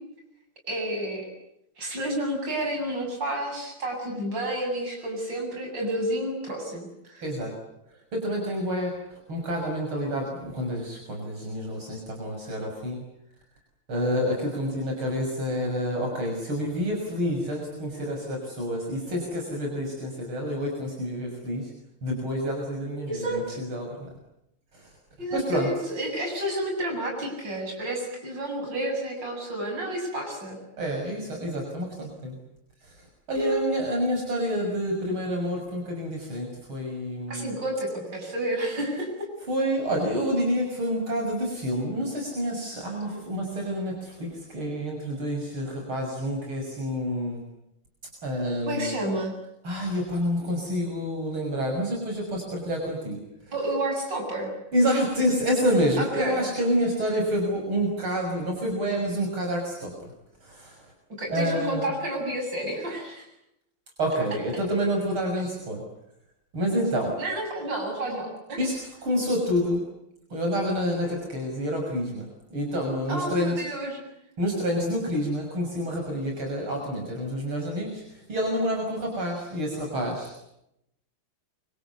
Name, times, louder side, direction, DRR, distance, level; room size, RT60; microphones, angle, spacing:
voice 1, 0.7-1.3 1.8-7.2 23.1-23.6 25.2-30.6 33.3-33.6 37.3-39.3 43.0-43.2 48.7-49.3 53.5-54.5 56.0-56.4 61.2-63.3 65.4-65.5 67.2-68.6 73.1-74.0, right 1 dB, 55° right, 1 dB, 8.4 m, -30 dB
voice 2, 7.2-7.5 8.1-9.0 9.3-13.0 13.9-21.7 22.0-24.1 24.7-24.9 25.3-25.7 30.8-32.4 32.8-32.9 33.3-37.6 39.5-47.4 48.2-49.0 49.6-53.2 54.7-59.9 60.4-60.7 61.3-61.9 64.0-65.8 66.5-67.2 68.6-69.8 70.3-73.7 74.4-80.4, equal, 75° right, 1 dB, 7.2 m, -28 dB
28.0 x 25.5 x 8.3 m, 0.81 s
omnidirectional pair, 2.3 m